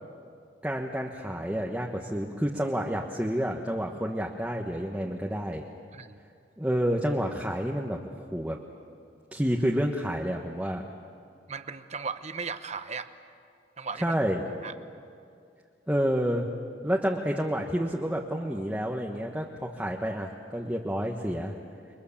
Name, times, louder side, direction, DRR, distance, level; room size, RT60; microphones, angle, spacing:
voice 1, 0.6-5.7 6.6-8.6 9.3-10.8 14.0-14.4 15.9-16.5 16.8-21.5, equal, 10° right, 0 dB, 1.2 m, -29 dB
voice 2, 11.5-13.1 13.8-14.1 14.6-14.7, right 5 dB, 40° right, 10 dB, 1.0 m, -36 dB
29.5 x 22.5 x 7.2 m, 2.4 s
head